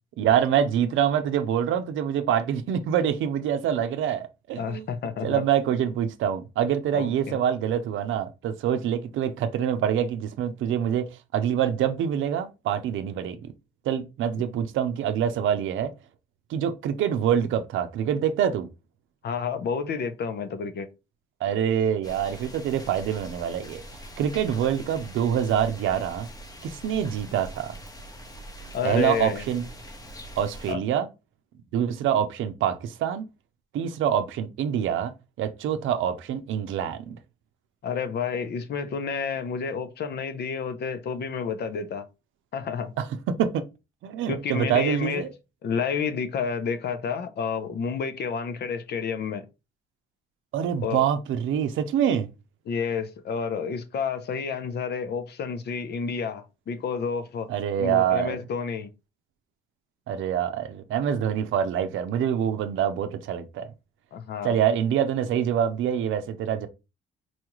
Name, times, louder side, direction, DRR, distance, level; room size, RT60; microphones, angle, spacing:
voice 1, 0.2-4.9 5.2-13.5 13.8-15.9 16.5-18.7 21.4-23.8 24.2-26.3 26.6-27.8 28.8-29.7 30.4-31.1 31.7-33.3 33.7-35.1 35.4-37.2 43.0-43.7 44.0-45.3 50.5-52.3 57.5-58.4 60.1-63.7 64.4-66.7, right 9 dB, 80° right, 0.6 m, -25 dB
voice 2, 4.6-5.4 7.0-7.4 19.2-20.9 28.7-29.5 30.7-30.8 37.8-42.0 42.5-42.9 44.3-45.3 45.6-49.5 50.8-51.0 52.7-57.5 57.8-58.9 64.1-64.6, left 6 dB, 55° left, 0.6 m, -30 dB
sound 1, 22.0-30.7, equal, 20° left, 0.8 m, -43 dB
4.1 x 2.3 x 3.0 m
cardioid pair, 90°, 20 cm